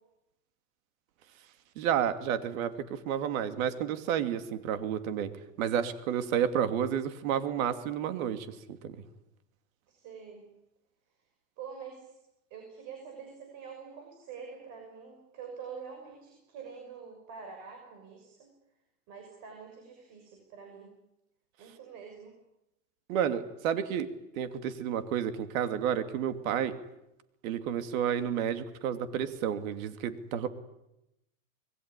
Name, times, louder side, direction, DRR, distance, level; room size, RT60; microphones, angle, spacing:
voice 1, 1.8-5.3 5.6-9.0 23.1-24.1 24.4-26.7 27.4-30.5, right 9 dB, 60° right, 10 dB, 2.7 m, -31 dB
voice 2, 9.9-10.4 11.6-12.1 12.5-18.5 19.1-20.9 21.6-22.4, right 6 dB, 40° right, 3 dB, 6.1 m, -46 dB
26.0 x 21.5 x 9.9 m, 0.88 s
supercardioid pair, 160°, 46 cm